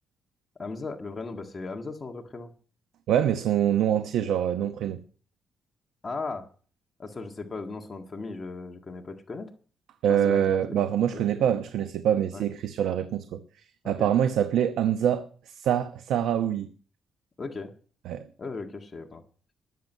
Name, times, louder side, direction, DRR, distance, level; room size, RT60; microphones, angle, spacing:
voice 1, 0.6-2.5 6.0-6.5 7.0-9.5 10.1-11.4 12.3-12.5 13.8-14.1 17.4-17.7 18.4-19.2, left 3 dB, 25° left, 1.8 m, -37 dB
voice 2, 3.1-5.0 10.0-13.4 13.8-16.7 18.1-18.2, right 10 dB, 90° right, 1.0 m, -25 dB
20.0 x 7.8 x 5.6 m
cardioid pair, 135°, 0 cm